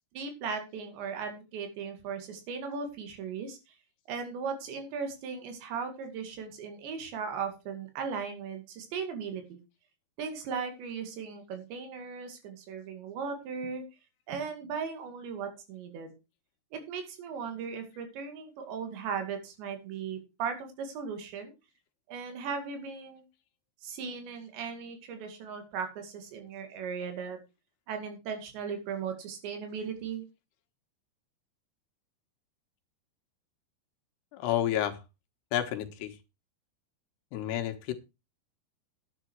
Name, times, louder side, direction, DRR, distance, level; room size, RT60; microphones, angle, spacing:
voice 1, 0.1-3.6 4.1-9.6 10.2-13.8 14.3-16.1 16.7-21.5 22.1-23.2 23.8-27.4 27.9-30.2, right 6 dB, 85° right, 6 dB, 4.6 m, -37 dB
voice 2, 34.3-35.0 35.5-36.2 37.3-37.9, left 11 dB, 75° left, 7 dB, 3.3 m, -30 dB
10.0 x 10.0 x 4.6 m, 0.28 s
omnidirectional pair, 4.9 m